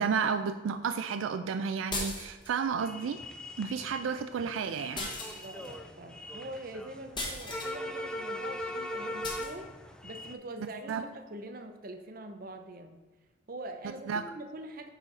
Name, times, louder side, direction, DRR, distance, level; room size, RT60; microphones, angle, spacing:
voice 1, 0.0-3.2 3.6-5.4 10.9-11.0 14.1-14.2, right 6 dB, 85° right, 9 dB, 0.3 m, -32 dB
sound 1, 1.9-2.6 5.0-5.7 7.2-7.8 9.2-9.5, left 2 dB, 25° left, 1.2 m, -37 dB
sound 2, 2.8-10.3, left 1 dB, 5° left, 0.4 m, -40 dB
voice 2, 5.3-9.7 10.0-13.0 13.5-14.9, right 1 dB, 45° right, 7 dB, 0.7 m, -44 dB
9.7 x 3.9 x 4.1 m, 1.3 s
head